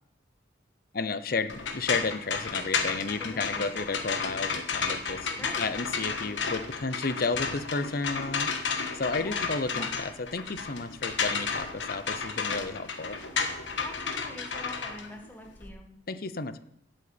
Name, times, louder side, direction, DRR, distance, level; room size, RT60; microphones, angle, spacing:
voice 1, 0.9-13.2 16.1-16.6, left 4 dB, 50° left, 12 dB, 0.7 m, -32 dB
sound 1, 1.5-15.7, left 5 dB, 85° left, 1.5 m, -32 dB
voice 2, 3.2-3.7 5.4-5.6 9.2-9.4 9.7-9.9 13.8-15.9, left 1 dB, 10° left, 2 dB, 1.8 m, -44 dB
8.2 x 8.0 x 8.7 m, 0.74 s
head